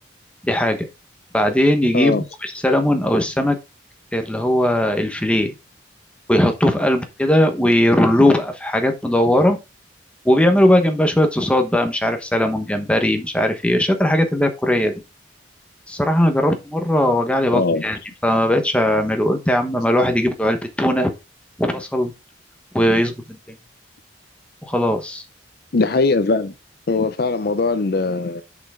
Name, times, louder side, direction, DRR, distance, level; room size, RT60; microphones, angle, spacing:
voice 1, 0.4-0.9 1.3-3.6 4.1-5.5 6.3-9.6 10.2-14.9 15.9-21.1 21.6-22.1 22.7-23.1 24.6-25.2, left 1 dB, 5° left, 1.0 m, -18 dB
voice 2, 17.5-17.8 25.7-26.5 26.9-28.4, left 3 dB, 50° left, 0.5 m, -20 dB
6.9 x 5.7 x 3.6 m
head